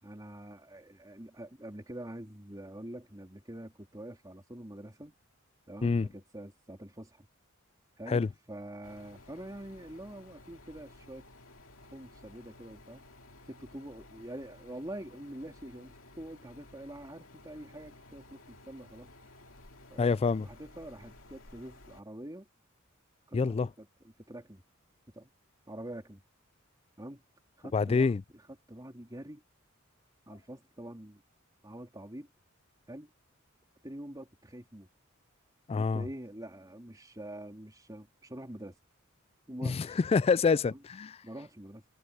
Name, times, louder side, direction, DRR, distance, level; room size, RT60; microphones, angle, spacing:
voice 1, 0.0-5.1 5.7-7.3 8.0-11.3 11.9-13.0 13.4-19.4 19.9-22.5 23.3-23.9 24.2-24.6 25.1-25.3 25.7-26.2 27.0-27.2 27.6-28.4 28.7-29.4 30.3-31.2 31.6-32.3 32.9-33.1 33.8-34.9 35.8-38.8 39.5-40.0 40.7-40.8 41.2-41.8, right 1 dB, 20° right, 3.7 m, -45 dB
sound 1, 8.8-22.0, left 2 dB, 75° left, 2.4 m, -55 dB
voice 2, 20.0-20.5 23.3-23.7 27.7-28.2 35.7-36.1 39.6-41.2, left 4 dB, 30° left, 0.3 m, -27 dB
head